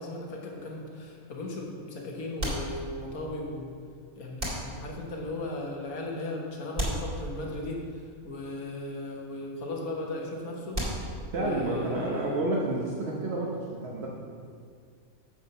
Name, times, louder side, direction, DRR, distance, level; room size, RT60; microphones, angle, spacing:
voice 1, 0.0-3.7 4.2-10.8 11.4-12.4, left 2 dB, 80° left, -1 dB, 1.7 m, -37 dB
sound 1, 0.6-1.2 2.4-3.3 4.4-5.2 6.7-7.8 10.7-11.6, right 1 dB, 30° right, 2.4 m, -35 dB
voice 2, 11.3-14.1, right 2 dB, 50° right, -3 dB, 1.1 m, -30 dB
7.5 x 6.9 x 5.4 m, 2.2 s
omnidirectional pair, 1.5 m